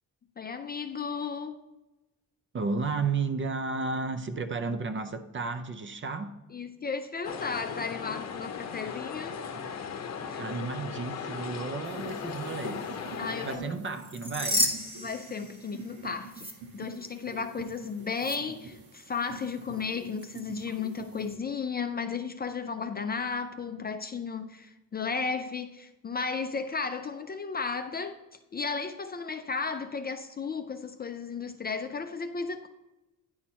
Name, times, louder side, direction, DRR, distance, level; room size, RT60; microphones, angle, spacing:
voice 1, 0.4-1.6 6.5-9.4 10.3-10.4 13.2-13.8 15.0-16.5 16.7-32.7, left 5 dB, 30° left, 0.4 m, -34 dB
voice 2, 2.5-6.3 10.4-12.9 13.4-14.7, right 4 dB, 35° right, 0.6 m, -33 dB
sound 1, 7.2-13.6, left 6 dB, 50° left, 0.8 m, -37 dB
sound 2, 11.8-21.3, right 4 dB, 75° right, 1.4 m, -46 dB
sound 3, 13.9-15.9 16.3-16.5 18.2-18.4, equal, 15° right, 1.1 m, -31 dB
10.0 x 4.4 x 4.3 m
wide cardioid pair, 145°, 34 cm